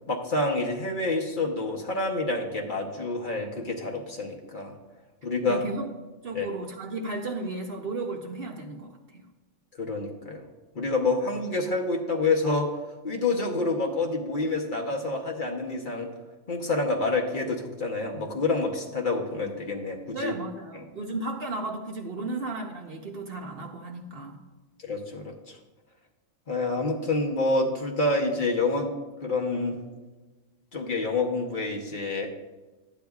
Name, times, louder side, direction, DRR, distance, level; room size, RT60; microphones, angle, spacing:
voice 1, 0.1-4.7 5.2-5.6 6.3-6.5 9.8-10.4 10.7-12.7 13.0-16.1 16.5-20.3 20.7-20.8 24.8-25.6 26.5-28.9 29.2-29.8 30.7-32.3, left 3 dB, 45° left, 0 dB, 0.9 m, -28 dB
voice 2, 5.4-5.9 6.2-9.2 20.1-24.4, right 2 dB, 55° right, 2 dB, 0.8 m, -34 dB
12.0 x 9.2 x 2.3 m, 1.2 s
omnidirectional pair, 1.4 m